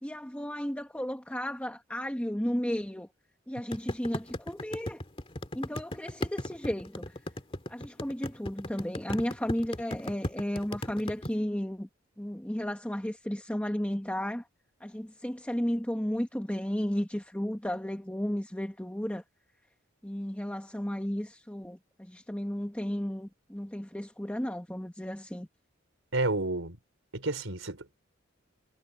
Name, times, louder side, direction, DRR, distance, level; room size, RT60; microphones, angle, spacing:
voice 1, 0.0-3.1 3.5-5.0 5.5-7.2 7.7-11.9 12.2-14.4 14.8-19.2 20.0-25.5, equal, 5° left, 1.4 m, -33 dB
sound 1, 3.7-11.3, left 1 dB, 30° left, 2.2 m, -35 dB
voice 2, 26.1-26.8 27.1-28.0, right 2 dB, 90° right, 4.1 m, -30 dB
head